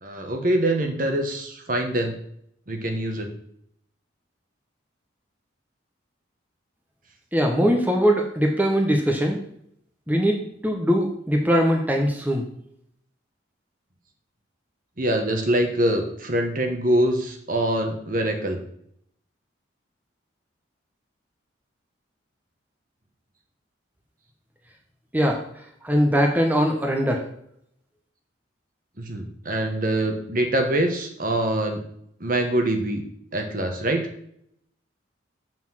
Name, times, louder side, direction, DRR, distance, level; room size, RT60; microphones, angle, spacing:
voice 1, 0.0-2.1 2.7-3.3 15.0-18.6 29.0-31.8 32.2-33.0 33.3-34.1, right 1 dB, 45° right, 4 dB, 1.4 m, -24 dB
voice 2, 7.3-9.4 10.1-12.5 25.1-27.3, equal, 10° right, 2 dB, 1.1 m, -21 dB
6.9 x 6.1 x 7.6 m, 0.70 s
head